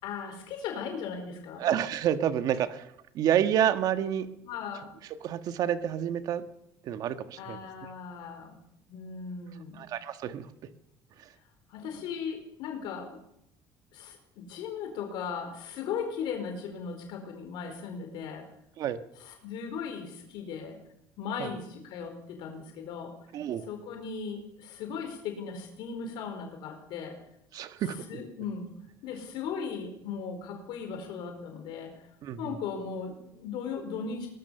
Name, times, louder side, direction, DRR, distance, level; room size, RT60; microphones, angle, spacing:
voice 1, 0.0-1.7 4.5-4.9 7.4-8.6 8.9-9.8 11.7-13.2 13.9-18.5 19.2-20.8 21.2-23.2 23.6-27.2 27.8-28.7 29.0-31.9 32.4-34.3, left 6 dB, 60° left, 4 dB, 4.6 m, -37 dB
voice 2, 1.6-2.9 3.1-4.4 5.2-6.4 6.8-7.6 9.8-10.5 11.2-11.3 18.8-19.0 21.4-21.5 23.3-23.7 27.5-28.0 32.2-32.5, right 10 dB, 45° right, 10 dB, 1.5 m, -29 dB
22.0 x 19.0 x 7.0 m, 0.77 s
cardioid pair, 165°, 9 cm